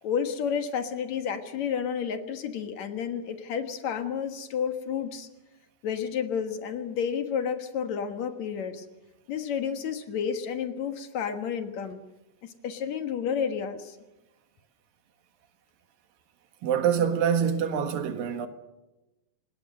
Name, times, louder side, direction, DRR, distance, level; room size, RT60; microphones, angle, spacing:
voice 1, 0.0-5.3 5.8-8.9 9.3-12.0 12.4-14.0, left 7 dB, 60° left, 2.5 m, -31 dB
voice 2, 16.6-18.5, right 8 dB, 85° right, 3.3 m, -25 dB
26.0 x 20.0 x 6.7 m
omnidirectional pair, 3.9 m